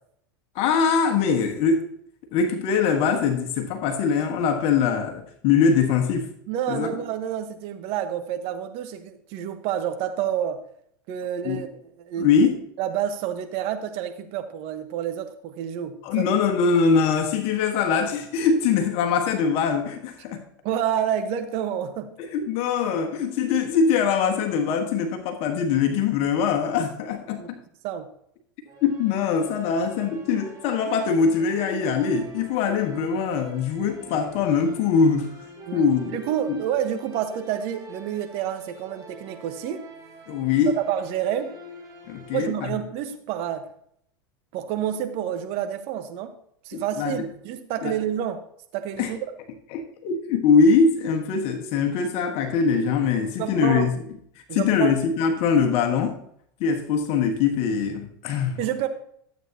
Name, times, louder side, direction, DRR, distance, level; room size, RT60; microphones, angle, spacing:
voice 1, 0.5-1.8 2.3-6.3 6.7-6.9 11.4-11.6 12.2-12.5 16.0-20.4 22.2-27.6 28.8-35.3 35.7-36.2 36.5-36.6 40.3-40.7 42.1-42.7 46.7-47.2 47.8-48.0 49.0-49.1 49.7-53.9 54.5-56.2 56.6-58.6, left 5 dB, 55° left, 4 dB, 1.5 m, -22 dB
voice 2, 6.5-10.6 11.1-11.7 12.0-12.3 12.8-16.2 20.6-22.2 27.4-27.5 27.8-28.1 35.7-39.8 40.8-41.5 42.3-43.7 44.5-46.3 46.6-48.4 48.7-49.2 53.4-53.9 54.5-55.0 58.6-58.9, right 9 dB, 55° right, 8 dB, 1.3 m, -29 dB
sound 1, 28.6-42.5, right 2 dB, 30° right, 3.0 m, -46 dB
12.5 x 8.2 x 2.9 m, 0.68 s
hypercardioid pair, 95°, 12 cm